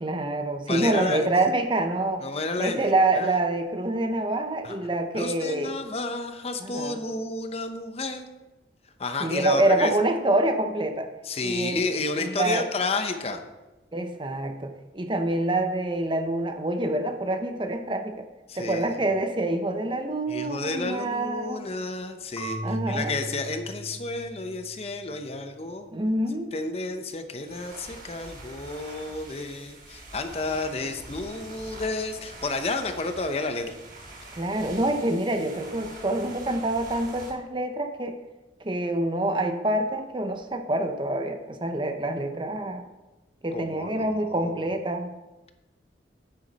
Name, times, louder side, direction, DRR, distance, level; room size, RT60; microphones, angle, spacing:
voice 1, 0.0-2.2 2.6-5.7 6.6-7.0 9.2-11.1 11.4-12.7 13.9-18.2 18.6-21.7 22.6-23.1 25.9-26.6 34.3-38.1 38.6-42.8 43.4-45.1, right 2 dB, 25° right, 7 dB, 0.7 m, -26 dB
voice 2, 0.7-1.3 2.2-3.3 4.6-4.8 5.2-8.3 9.0-9.9 11.2-13.4 18.5-18.9 20.3-25.9 26.5-33.7 43.5-44.7, left 3 dB, 35° left, 7 dB, 0.8 m, -31 dB
Marimba xylophone / Wood, 22.4-25.2, right 1 dB, 20° left, 1.6 m, -37 dB
sound 1, 27.4-37.3, right 2 dB, 50° right, 4.0 m, -45 dB
9.5 x 9.2 x 4.1 m, 1.1 s
head